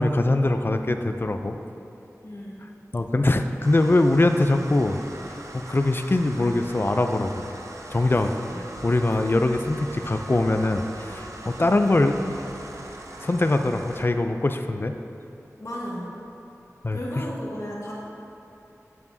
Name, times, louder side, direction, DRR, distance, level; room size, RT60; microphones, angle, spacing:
voice 1, 0.0-1.6 2.9-5.0 5.5-7.5 7.9-8.3 8.8-12.4 13.2-14.9 16.8-17.0, left 2 dB, 40° left, 7 dB, 0.3 m, -22 dB
voice 2, 2.2-2.6 8.1-8.6 15.6-16.1 16.9-17.9, equal, 60° left, -5 dB, 1.4 m, -34 dB
sound 1, 3.6-14.0, right 1 dB, 65° right, 0.6 m, -40 dB
8.3 x 6.9 x 2.7 m, 2.8 s
wide cardioid pair, 55°, 6 cm